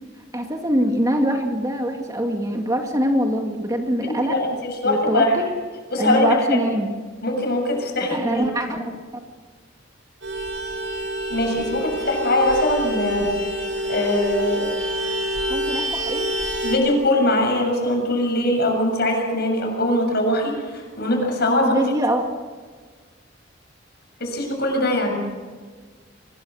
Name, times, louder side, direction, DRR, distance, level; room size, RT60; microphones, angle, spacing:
voice 1, 0.3-4.3 4.8-5.5 6.0-7.0 8.1-8.9 15.5-16.3 21.6-22.2, equal, 20° right, 3 dB, 2.2 m, -23 dB
voice 2, 4.2-5.4 5.9-6.7 7.2-8.9 11.3-13.4 13.9-14.7 16.6-21.8 24.2-25.2, left 1 dB, 60° left, 2 dB, 7.3 m, -22 dB
Vehicle horn car horn honking, 10.2-16.8, right 1 dB, 80° right, 7.9 m, -27 dB
24.5 x 21.5 x 6.5 m, 1.5 s
head